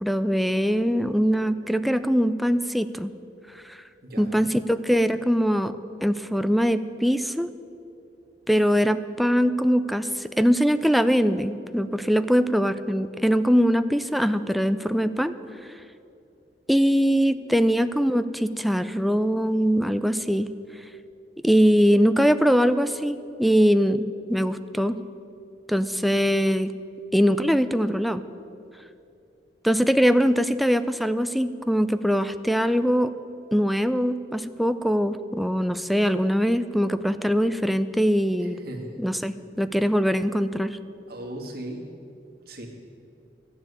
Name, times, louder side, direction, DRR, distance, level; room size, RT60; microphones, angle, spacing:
voice 1, 0.0-3.1 3.7-3.8 4.2-5.8 6.0-7.5 8.5-15.3 16.7-20.5 21.4-25.0 25.7-26.7 27.1-28.2 29.6-33.1 33.5-38.6 39.0-40.8, equal, ahead, 11 dB, 0.4 m, -22 dB
voice 2, 4.0-4.5 38.4-39.0 41.1-41.8 42.5-42.7, right 1 dB, 60° right, 0 dB, 2.1 m, -37 dB
13.0 x 7.2 x 9.6 m, 2.6 s
head